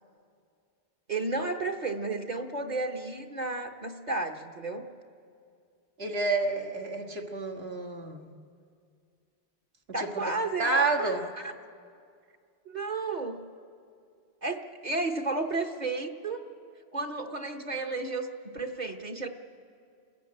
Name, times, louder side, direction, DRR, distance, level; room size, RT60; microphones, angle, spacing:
voice 1, 1.1-4.9 9.9-11.1 11.4-11.5 12.7-13.4 14.4-16.4 16.9-19.3, right 3 dB, 45° right, 3 dB, 1.3 m, -32 dB
voice 2, 6.0-8.3 10.0-10.2 10.6-11.2, right 3 dB, 70° right, 2 dB, 2.0 m, -29 dB
28.5 x 15.5 x 8.6 m, 2.3 s
omnidirectional pair, 1.1 m